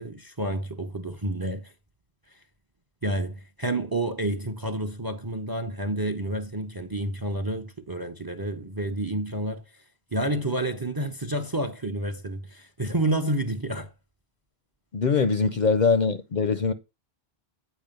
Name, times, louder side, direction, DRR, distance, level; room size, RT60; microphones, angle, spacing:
voice 1, 0.0-1.7 3.0-9.6 10.1-13.9, right 1 dB, 25° right, 0.6 m, -29 dB
voice 2, 14.9-16.7, left 5 dB, 50° left, 0.6 m, -22 dB
9.1 x 4.9 x 5.2 m
omnidirectional pair, 1.1 m